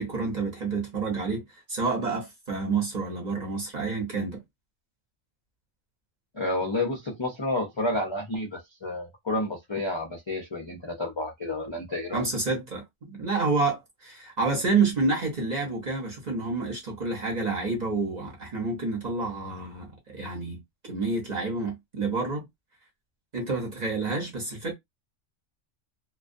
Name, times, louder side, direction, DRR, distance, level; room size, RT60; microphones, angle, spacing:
voice 1, 0.0-4.4 12.1-22.5 23.3-24.7, right 3 dB, 40° right, 0.8 m, -29 dB
voice 2, 6.3-12.2, left 2 dB, 35° left, 0.4 m, -30 dB
2.3 x 2.1 x 2.5 m
omnidirectional pair, 1.3 m